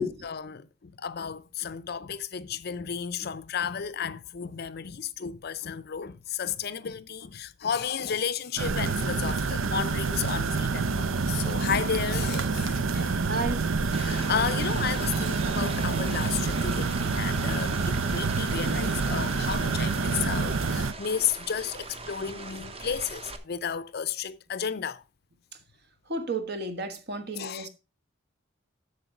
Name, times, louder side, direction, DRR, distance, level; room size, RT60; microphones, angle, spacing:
voice 1, 0.2-13.2 13.9-25.0 27.4-27.7, left 7 dB, 50° left, 0.5 m, -33 dB
sound 1, 8.6-20.9, right 4 dB, 80° right, 0.6 m, -27 dB
voice 2, 13.3-13.6 26.1-27.7, right 1 dB, 50° right, 1.3 m, -32 dB
sound 2, 13.9-23.4, right 3 dB, 30° right, 0.9 m, -40 dB
8.0 x 6.6 x 4.8 m
head